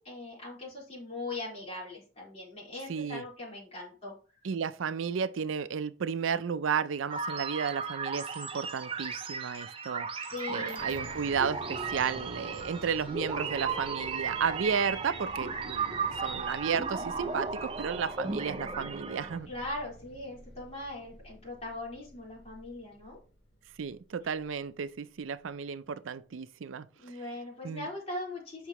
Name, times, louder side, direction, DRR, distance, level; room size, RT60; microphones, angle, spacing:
voice 1, 0.0-4.1 10.2-10.9 19.5-23.2 27.0-28.7, left 2 dB, 30° left, 4.0 m, -40 dB
voice 2, 2.9-3.2 4.4-19.5 23.8-27.2 27.6-27.9, right 6 dB, 85° right, 0.4 m, -33 dB
sound 1, 7.1-19.4, right 5 dB, 30° right, 0.5 m, -36 dB
sound 2, 10.8-25.0, equal, 65° left, 1.4 m, -49 dB
8.2 x 5.8 x 3.0 m
head